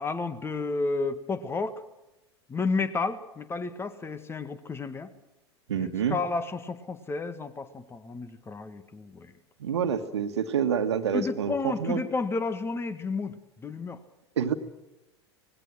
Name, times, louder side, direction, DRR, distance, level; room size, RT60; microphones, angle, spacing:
voice 1, 0.0-1.8 2.5-5.1 5.7-9.3 11.1-14.0, left 3 dB, 15° left, 12 dB, 1.8 m, -32 dB
voice 2, 5.7-6.2 9.6-12.0 14.4-14.5, right 8 dB, 70° right, 8 dB, 1.9 m, -27 dB
26.0 x 20.0 x 6.4 m, 0.96 s
figure-of-eight pair, 90°, 15 cm